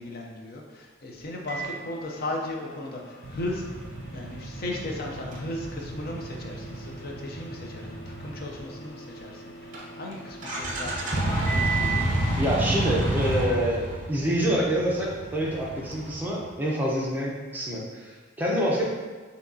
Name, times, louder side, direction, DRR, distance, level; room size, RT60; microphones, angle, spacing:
voice 1, 0.0-3.8 4.1-12.0, left 1 dB, 50° left, 0 dB, 0.5 m, -36 dB
Microwave oven, 1.5-12.2, right 5 dB, 75° left, 1.0 m, -39 dB
sound 1, 3.2-8.8 9.7-9.8 10.1-10.2 10.4-16.5, right 1 dB, 40° right, 0.7 m, -30 dB
voice 2, 12.4-13.8 14.1-18.9, equal, 10° right, -5 dB, 0.7 m, -26 dB
5.9 x 2.9 x 2.7 m, 1.4 s
head